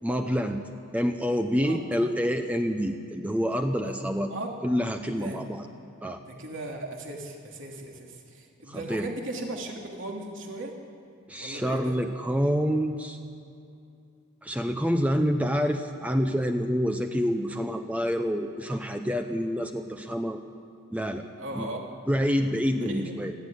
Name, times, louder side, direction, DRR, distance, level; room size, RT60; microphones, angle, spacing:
voice 1, 0.0-0.6 0.9-4.3 4.6-5.7 6.0-6.2 8.7-9.1 11.3-13.2 14.4-20.4 20.9-21.2 21.5-21.7 22.1-23.3, equal, 5° right, 6 dB, 0.7 m, -27 dB
voice 2, 5.1-5.5 6.2-10.7 11.4-11.9 21.4-21.9 22.7-23.1, right 2 dB, 65° right, 0 dB, 3.1 m, -37 dB
20.5 x 14.5 x 9.1 m, 2.5 s
head